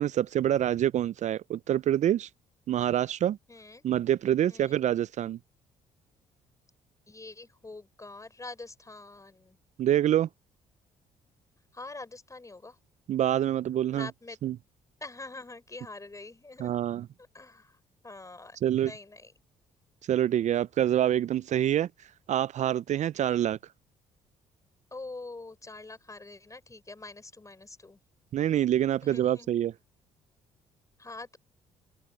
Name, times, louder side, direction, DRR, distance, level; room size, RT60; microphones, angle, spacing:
voice 1, 0.0-2.3 2.7-3.4 3.8-5.4 9.8-10.3 13.1-14.1 14.4-14.6 16.6-17.1 18.6-18.9 20.1-21.9 22.3-23.6 28.3-29.7, right 11 dB, 55° right, 0.5 m, -26 dB
voice 2, 3.5-3.8 4.5-4.8 7.1-9.6 11.7-12.8 13.9-14.4 15.0-16.8 17.3-17.8 18.0-19.3 24.9-28.0 29.0-29.6 31.0-31.4, left 3 dB, 20° left, 5.2 m, -45 dB
open air
hypercardioid pair, 55°, 15 cm